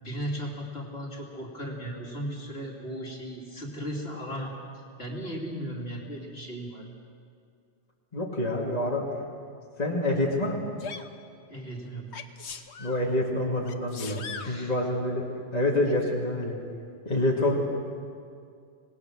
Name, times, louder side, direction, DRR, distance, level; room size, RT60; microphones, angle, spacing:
voice 1, 0.0-4.5 5.0-6.8 11.4-12.2 14.4-14.7, equal, 65° left, -2 dB, 2.9 m, -36 dB
voice 2, 8.1-9.1 9.8-10.6 12.8-15.3 15.5-16.6 17.0-17.6, left 1 dB, 40° left, -3 dB, 2.6 m, -27 dB
Sneeze, 10.8-11.1 12.1-13.0 13.7-14.6 15.9-16.0, left 6 dB, 90° left, 1.3 m, -39 dB
26.0 x 19.0 x 6.4 m, 2.3 s
omnidirectional pair, 1.1 m